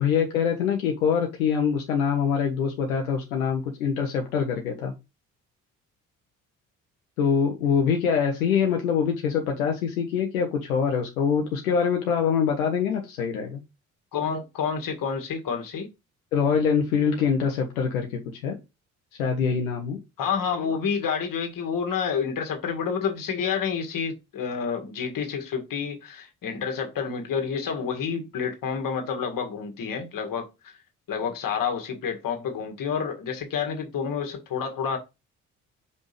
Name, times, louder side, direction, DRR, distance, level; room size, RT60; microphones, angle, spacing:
voice 1, 0.0-4.9 7.2-13.6 16.3-18.6 19.2-20.0, left 6 dB, 80° left, 1.0 m, -24 dB
voice 2, 14.1-15.9 20.2-30.7 31.1-35.0, left 6 dB, 50° left, 1.9 m, -29 dB
6.7 x 5.3 x 3.3 m
figure-of-eight pair, 45°, 42 cm